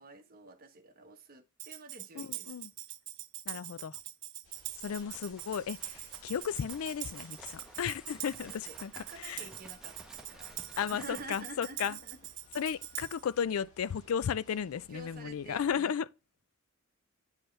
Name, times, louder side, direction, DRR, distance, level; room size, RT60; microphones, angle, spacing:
voice 1, 0.0-2.5 8.4-10.5 10.9-12.2 14.9-15.9, right 3 dB, 45° right, 1.0 m, -49 dB
Tambourine, 1.6-13.3, right 15 dB, 60° right, 0.5 m, -44 dB
voice 2, 2.2-2.7 3.5-4.0 4.8-8.9 9.2-9.4 10.8-12.0 12.5-16.1, left 7 dB, 80° left, 0.4 m, -34 dB
sound 1, 4.4-15.7, left 2 dB, 35° left, 3.2 m, -60 dB
Livestock farm animals working animals, 4.8-11.3, right 1 dB, 5° right, 0.9 m, -55 dB
9.0 x 4.4 x 3.2 m
head